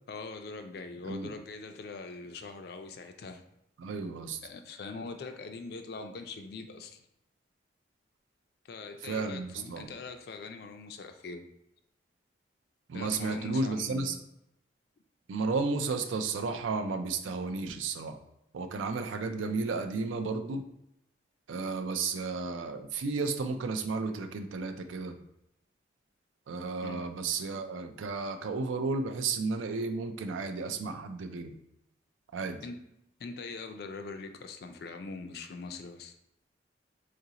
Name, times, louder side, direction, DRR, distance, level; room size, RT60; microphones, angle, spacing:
voice 1, 0.1-3.4 4.4-7.0 8.6-11.5 12.9-14.2 26.8-27.1 32.6-32.9 33.2-36.1, left 3 dB, 55° left, 7 dB, 0.3 m, -42 dB
voice 2, 3.8-4.4 9.0-9.9 12.9-14.2 15.3-18.2 18.5-20.6 21.5-25.2 26.5-31.6 32.3-32.6, right 4 dB, 90° right, 7 dB, 0.4 m, -33 dB
3.9 x 2.5 x 2.8 m, 0.81 s
head